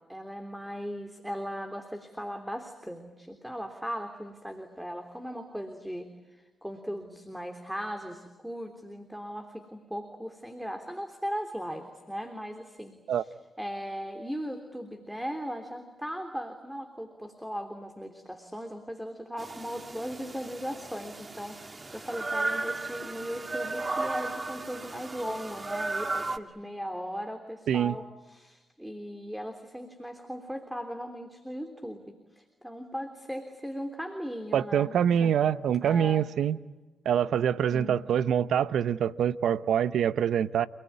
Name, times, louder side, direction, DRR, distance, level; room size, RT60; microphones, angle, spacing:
voice 1, 0.1-34.9 35.2-35.3 35.8-36.2 37.7-38.0, equal, 5° right, 3.4 m, -38 dB
sound 1, 19.4-26.4, right 3 dB, 35° right, 2.0 m, -35 dB
voice 2, 34.5-36.6 37.0-40.7, right 9 dB, 75° right, 0.8 m, -25 dB
29.0 x 20.0 x 9.6 m
supercardioid pair, 45°, 0 cm